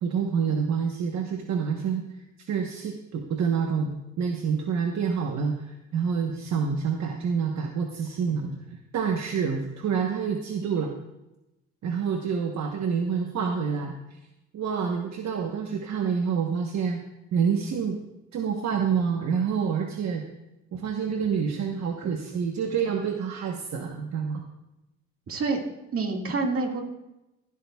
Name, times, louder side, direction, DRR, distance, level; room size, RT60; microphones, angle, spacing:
voice 1, 0.0-2.1 2.4-10.9 11.8-13.9 14.5-17.0 17.3-18.0 18.3-20.2 20.7-24.4, right 6 dB, 65° right, 3 dB, 1.1 m, -27 dB
voice 2, 25.3-25.6 25.9-26.8, right 3 dB, 50° right, 2 dB, 2.0 m, -27 dB
17.5 x 12.5 x 2.3 m, 0.95 s
cardioid pair, 90°, 30 cm